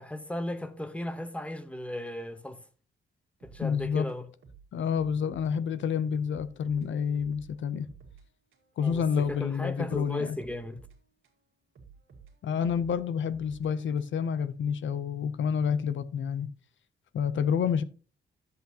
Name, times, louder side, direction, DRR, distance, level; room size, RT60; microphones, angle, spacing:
voice 1, 0.0-2.6 3.4-4.2 8.8-10.8, left 1 dB, 5° left, 0.8 m, -36 dB
sound 1, 3.4-5.5 5.8-5.9 6.3-8.3 8.5-11.4 11.8-14.3, right 5 dB, 70° right, 2.1 m, -54 dB
voice 2, 3.6-4.1 4.7-7.9 8.8-10.4 12.4-16.5 17.1-17.8, left 7 dB, 65° left, 0.5 m, -29 dB
11.5 x 7.9 x 2.8 m
wide cardioid pair, 150°, 21 cm